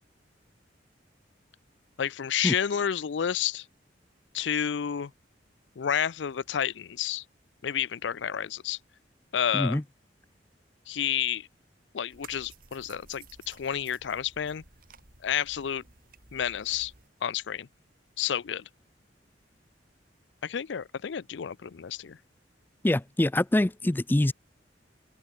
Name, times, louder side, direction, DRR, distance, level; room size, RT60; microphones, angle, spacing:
voice 1, 2.0-3.6 4.3-5.1 5.8-7.2 7.6-8.8 9.3-9.8 10.9-11.5 11.9-14.6 15.2-15.8 16.3-16.9 17.2-17.7 18.2-18.6 20.4-22.2, left 9 dB, 75° left, 0.5 m, -30 dB
sound 1, 12.1-17.1, right 4 dB, 55° right, 7.4 m, -54 dB
voice 2, 22.8-24.3, left 1 dB, 10° left, 0.4 m, -24 dB
head